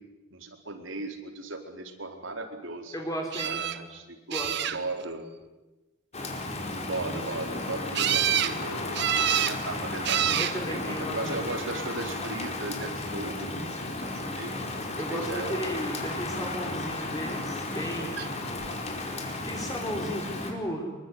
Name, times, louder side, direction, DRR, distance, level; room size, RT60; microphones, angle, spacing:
voice 1, 0.3-2.9 3.4-4.4 4.7-5.3 6.9-10.4 10.7-13.5 13.8-14.6 15.1-15.7 16.1-16.3, right 2 dB, 75° right, 4 dB, 4.6 m, -37 dB
voice 2, 2.9-3.6 4.3-4.7 10.0-10.1 10.4-11.4 14.9-18.4 18.9-21.0, equal, 20° left, 1 dB, 4.3 m, -35 dB
sound 1, 3.3-3.8 4.3-5.0 7.9-8.6 9.0-9.6 10.0-10.6 11.5-12.0 18.2-18.3 18.6-18.7, right 10 dB, 60° right, 1.4 m, -27 dB
Rain, 6.1-20.5, left 2 dB, 35° left, 4.7 m, -34 dB
25.5 x 23.5 x 9.8 m, 1.1 s
head